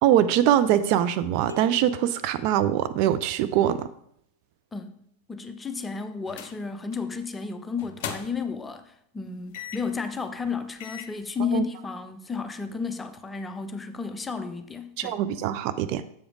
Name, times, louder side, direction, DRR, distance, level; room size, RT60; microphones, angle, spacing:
voice 1, 0.0-3.9 11.5-11.6 15.0-16.0, right 11 dB, 45° right, 0.3 m, -23 dB
sound 1, 1.5-3.4, left 2 dB, 85° left, 0.6 m, -45 dB
voice 2, 5.3-15.2, left 5 dB, 15° left, 0.6 m, -33 dB
sound 2, 6.3-6.6 6.9-7.1 7.8-8.6 9.5-10.0 10.4-10.5 10.8-11.2, left 8 dB, 50° left, 0.7 m, -38 dB
7.2 x 4.9 x 4.9 m
figure-of-eight pair, 90°, 0 cm